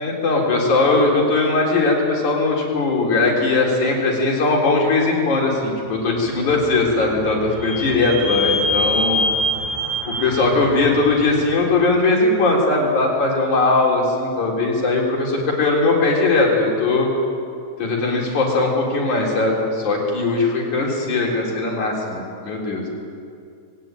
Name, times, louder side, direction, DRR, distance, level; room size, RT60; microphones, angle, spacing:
voice 1, 0.0-9.2 10.1-17.1 17.8-22.9, left 3 dB, 85° left, -2 dB, 5.2 m, -19 dB
Vehicle / Squeak, 6.2-11.8, left 1 dB, 10° right, 4.3 m, -25 dB
20.5 x 17.5 x 9.1 m, 2.4 s
omnidirectional pair, 3.3 m